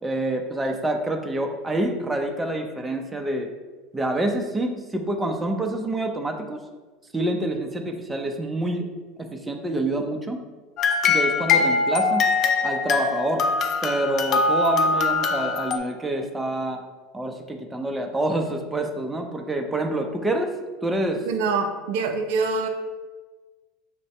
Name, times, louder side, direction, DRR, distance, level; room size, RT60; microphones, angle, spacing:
voice 1, 0.0-3.5 3.9-6.6 7.1-8.8 9.2-10.4 11.1-12.2 12.6-13.4 13.8-16.8 17.1-20.5 20.8-21.2, right 1 dB, 10° right, 3 dB, 0.5 m, -27 dB
sound 1, 10.8-15.8, left 4 dB, 45° left, 0.5 m, -22 dB
voice 2, 21.3-22.7, right 4 dB, 70° right, 4 dB, 0.4 m, -25 dB
5.8 x 2.6 x 3.2 m, 1.3 s
hypercardioid pair, 100°, 0 cm